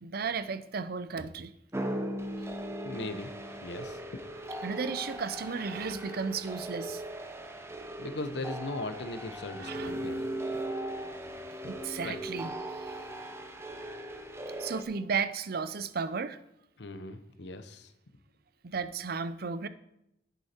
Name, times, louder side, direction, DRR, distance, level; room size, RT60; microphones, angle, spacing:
voice 1, 0.0-1.5 2.4-2.5 4.6-7.0 9.6-9.9 11.7-13.0 14.6-16.4 18.6-19.7, right 5 dB, 55° right, 14 dB, 0.6 m, -34 dB
sound 1, 1.7-14.8, right 1 dB, 15° right, 0.9 m, -38 dB
voice 2, 2.8-3.3 3.6-4.2 8.0-10.2 12.0-12.2 16.8-17.9, left 2 dB, 65° left, 10 dB, 0.9 m, -38 dB
11.0 x 8.2 x 4.4 m, 0.82 s
head